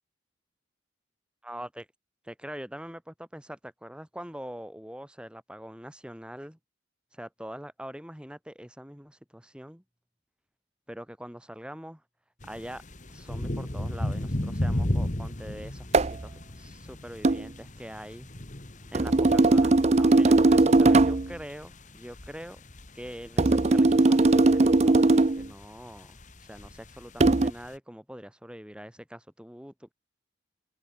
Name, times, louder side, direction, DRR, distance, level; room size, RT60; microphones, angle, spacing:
voice 1, 1.4-1.9 2.2-6.6 7.1-9.8 10.9-12.0 12.5-12.8 13.1-18.3 18.9-22.6 22.9-29.9, equal, 5° right, 3.2 m, -43 dB
sound 1, 12.4-27.7, left 1 dB, 40° left, 1.9 m, -36 dB
sound 2, 15.9-16.2 17.2-17.4 18.9-21.3 23.4-25.5 27.2-27.5, right 2 dB, 35° right, 0.5 m, -19 dB
open air
head